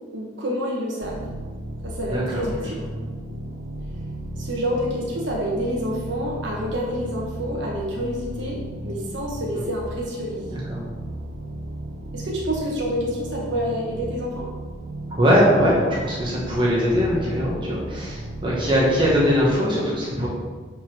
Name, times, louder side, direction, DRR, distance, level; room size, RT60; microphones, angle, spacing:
voice 1, 0.1-1.2 1.8-2.8 4.4-10.4 12.1-14.5, equal, 65° right, -3 dB, 1.3 m, -28 dB
sound 1, 1.0-19.4, right 1 dB, 45° right, 0.8 m, -35 dB
voice 2, 2.1-2.7 9.5-9.6 10.5-10.8 15.1-20.3, equal, 25° right, -5 dB, 1.4 m, -21 dB
5.6 x 5.1 x 6.0 m, 1.4 s
head